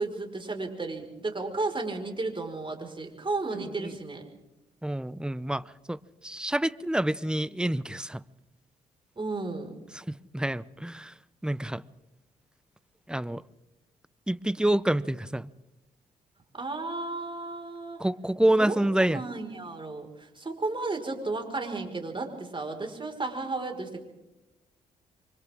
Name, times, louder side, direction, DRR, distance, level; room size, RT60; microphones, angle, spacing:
voice 1, 0.0-4.2 9.2-9.7 16.5-18.0 18.6-24.0, right 3 dB, 30° right, 5.2 m, -33 dB
voice 2, 3.5-3.9 4.8-6.0 6.2-8.2 9.9-11.1 11.4-11.8 13.1-13.4 14.3-15.5 18.0-19.2, right 1 dB, 5° right, 0.8 m, -27 dB
28.5 x 24.5 x 3.8 m
hypercardioid pair, 45°, 18 cm